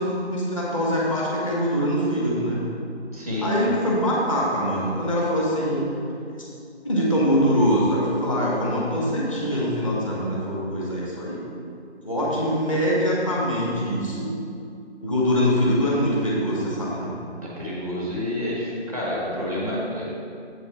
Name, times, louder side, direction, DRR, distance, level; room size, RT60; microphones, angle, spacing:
voice 1, 0.0-2.6 3.4-5.9 6.3-6.5 6.8-11.4 12.0-14.3 15.0-17.1, equal, 30° left, -5 dB, 1.5 m, -23 dB
voice 2, 3.1-3.5 17.6-20.0, left 1 dB, 15° left, -5 dB, 1.0 m, -28 dB
7.8 x 5.9 x 4.4 m, 2.4 s
figure-of-eight pair, 160°, 35 cm